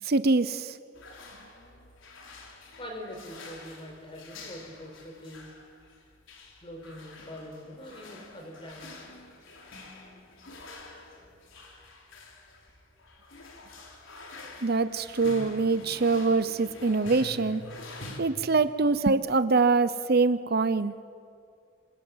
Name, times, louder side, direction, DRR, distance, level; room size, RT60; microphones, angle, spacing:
voice 1, 0.0-0.8 14.6-17.6 18.2-21.0, right 3 dB, 50° right, 13 dB, 0.8 m, -24 dB
sound 1, 0.9-18.2, left 2 dB, 75° left, 3.9 m, -47 dB
voice 2, 2.8-5.5 6.6-9.1, equal, 25° left, 3 dB, 4.9 m, -43 dB
26.5 x 26.0 x 8.0 m, 2.3 s
head